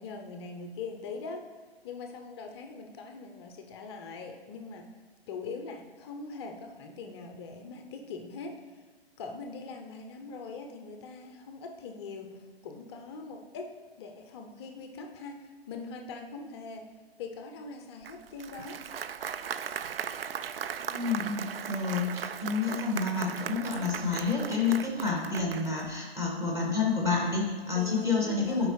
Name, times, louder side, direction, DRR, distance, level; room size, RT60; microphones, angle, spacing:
voice 1, 0.0-1.4 1.8-5.0 5.3-8.8 9.2-16.9 17.2-18.8 27.7-28.7, left 4 dB, 25° left, 4 dB, 0.5 m, -42 dB
Applause, 18.0-26.0, right 8 dB, 65° right, 0.4 m, -38 dB
voice 2, 20.8-28.7, left 4 dB, 10° right, -3 dB, 1.6 m, -29 dB
11.5 x 4.9 x 3.2 m, 1.4 s
figure-of-eight pair, 125°, 31 cm